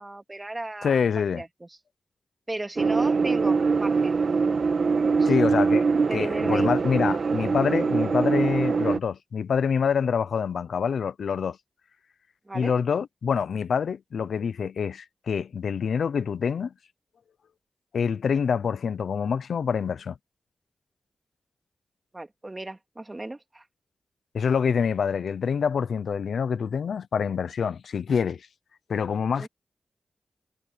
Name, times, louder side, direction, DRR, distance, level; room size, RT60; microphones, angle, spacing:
voice 1, 0.0-1.7 2.5-4.2 5.1-5.3 6.1-6.7 12.5-12.7 22.1-23.6 29.4-29.5, right 2 dB, 25° right, 3.0 m, -35 dB
voice 2, 0.8-1.4 5.3-5.8 6.1-11.6 12.5-16.7 17.9-20.1 24.3-28.4 28.9-29.5, left 6 dB, 85° left, 0.7 m, -26 dB
sound 1, 2.8-9.0, right 4 dB, 70° right, 1.9 m, -23 dB
cardioid pair, 50°, 0 cm